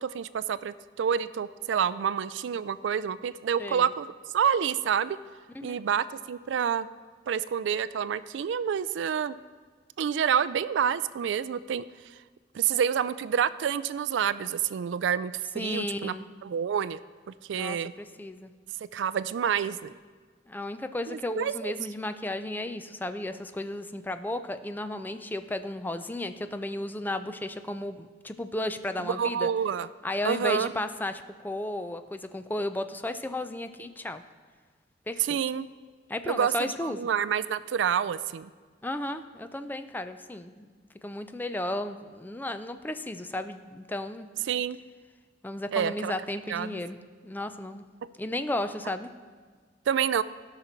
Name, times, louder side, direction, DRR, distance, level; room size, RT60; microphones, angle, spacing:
voice 1, 0.0-4.1 4.3-5.2 5.6-6.9 7.3-9.4 10.0-11.8 12.5-16.1 16.4-17.0 17.3-17.9 18.9-19.9 21.1-21.7 29.2-29.9 30.2-30.7 35.2-35.7 36.3-38.5 44.5-44.8 45.7-46.1 46.5-46.8 49.9-50.2, right 8 dB, 75° right, 16 dB, 0.3 m, -28 dB
voice 2, 15.6-16.3 17.5-18.5 20.5-29.5 30.0-34.2 35.1-35.4 36.1-37.0 38.8-40.7 41.0-44.3 45.4-47.0 47.2-47.8 48.2-49.1, left 1 dB, 10° left, 10 dB, 0.4 m, -34 dB
16.5 x 5.8 x 4.4 m, 1.5 s
head